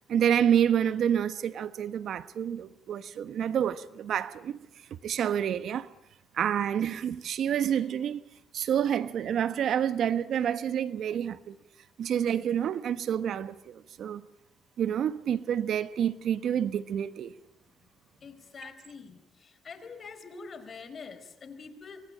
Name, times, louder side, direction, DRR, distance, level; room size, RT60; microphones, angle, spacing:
voice 1, 0.1-4.6 5.0-5.9 6.3-8.2 8.5-11.6 12.0-14.2 14.8-17.3, right 9 dB, 70° right, 1.2 m, -28 dB
voice 2, 18.2-22.0, left 5 dB, 45° left, 4.6 m, -45 dB
25.0 x 25.0 x 8.7 m
cardioid pair, 90°, 0 cm